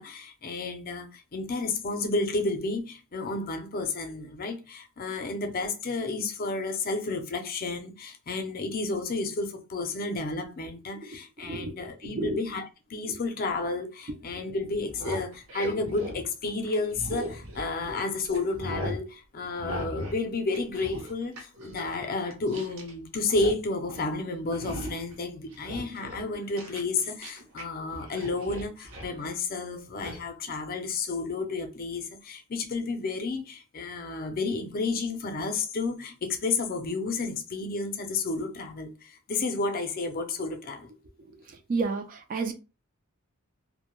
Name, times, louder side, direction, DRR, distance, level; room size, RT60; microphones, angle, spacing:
voice 1, 0.0-12.6 12.9-40.9, left 3 dB, 45° left, 0.5 m, -31 dB
voice 2, 11.4-11.8 12.2-12.4 13.1-13.2 17.8-18.0 41.7-42.5, right 3 dB, 40° right, 0.3 m, -30 dB
sound 1, 14.8-18.0 18.3-19.0 19.6-20.2 20.5-22.9 23.2-23.6 23.9-24.1 24.5-25.1 25.5-27.6 27.9-29.2 30.0-30.2, equal, 65° right, 0.7 m, -38 dB
2.1 x 2.1 x 3.0 m
head